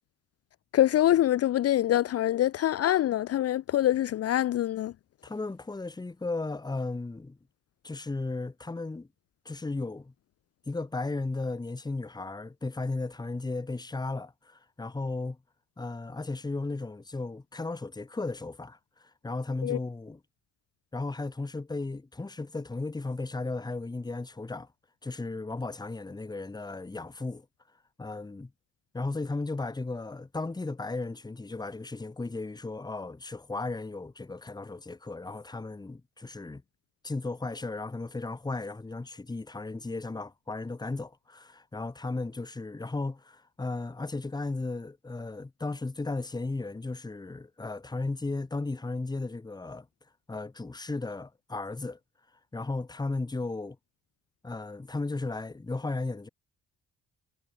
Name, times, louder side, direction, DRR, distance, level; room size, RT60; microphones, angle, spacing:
voice 1, 0.7-4.9 19.6-19.8, left 12 dB, 55° left, 0.5 m, -25 dB
voice 2, 5.2-7.4 7.8-9.1 9.4-10.1 10.7-15.4 15.8-20.2 20.9-24.7 25.0-27.5 28.0-28.5 28.9-36.6 37.0-49.9 50.3-52.0 52.5-53.8 54.4-56.3, left 3 dB, 15° left, 1.1 m, -35 dB
cardioid pair, 90°, 30 cm